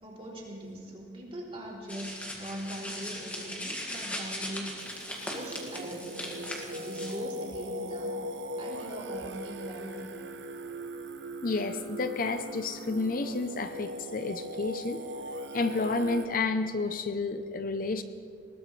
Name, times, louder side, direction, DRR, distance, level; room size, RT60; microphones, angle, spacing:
voice 1, 0.0-8.1 8.6-10.1, right 1 dB, 35° right, -3 dB, 3.3 m, -41 dB
sound 1, 1.9-7.1, left 1 dB, 10° left, 2.0 m, -39 dB
Singing, 4.8-16.3, equal, 75° right, 0.8 m, -39 dB
voice 2, 11.4-15.0 15.5-18.0, left 3 dB, 50° left, 9 dB, 0.7 m, -30 dB
20.5 x 18.5 x 3.3 m, 2.3 s
head